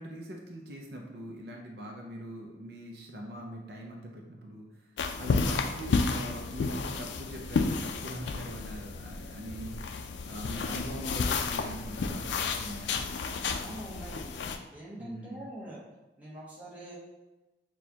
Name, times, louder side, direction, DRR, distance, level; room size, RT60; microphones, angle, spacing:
voice 1, 0.0-10.0 10.2-13.0 15.0-15.4, right 1 dB, 65° right, 0 dB, 0.5 m, -42 dB
sound 1, 5.0-14.6, left 4 dB, 85° left, 0.4 m, -32 dB
voice 2, 13.6-14.4 14.7-15.8 16.2-17.0, right 1 dB, 10° right, -7 dB, 0.9 m, -44 dB
6.2 x 2.3 x 2.8 m, 1.1 s
head